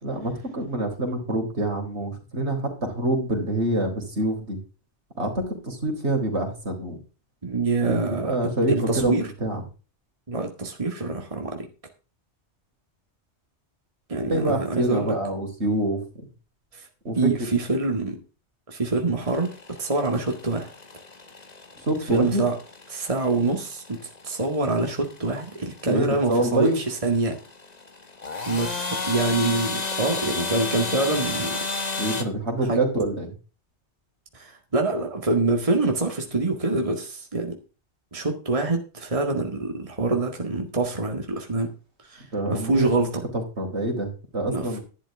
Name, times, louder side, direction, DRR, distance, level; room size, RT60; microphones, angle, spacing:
voice 1, 0.0-4.6 5.2-7.0 7.8-8.0 8.2-9.6 14.3-16.0 17.0-17.3 21.8-22.5 25.9-26.8 32.0-33.3 42.3-42.9 43.6-44.8, right 1 dB, 70° right, 3 dB, 4.2 m, -26 dB
voice 2, 7.4-8.3 8.8-9.3 10.3-11.7 14.1-15.2 16.7-16.9 17.2-18.2 18.7-19.5 19.8-20.7 22.1-22.5 22.9-27.4 28.5-31.6 32.7-32.8 34.3-37.6 38.1-41.7 42.0-42.3 42.5-43.2 44.5-44.8, right 3 dB, 30° right, 3 dB, 2.0 m, -25 dB
sound 1, 19.2-32.2, left 3 dB, 35° left, 1.5 m, -33 dB
12.0 x 11.5 x 3.5 m, 0.34 s
omnidirectional pair, 1.2 m